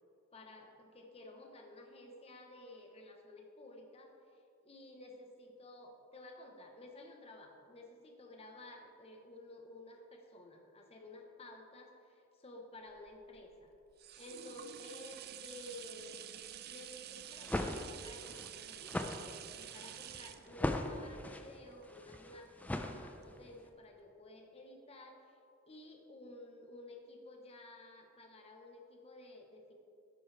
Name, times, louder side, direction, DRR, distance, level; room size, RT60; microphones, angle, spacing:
voice 1, 0.3-13.7 14.2-16.1 16.7-25.4 25.7-29.7, left 2 dB, 30° left, 2 dB, 1.1 m, -53 dB
sound 1, 13.0-22.7 23.2-23.3, right 10 dB, 50° right, 0.4 m, -50 dB
sound 2, 17.2-23.5, left 1 dB, 10° left, 0.5 m, -40 dB
11.0 x 9.4 x 3.4 m, 2.5 s
head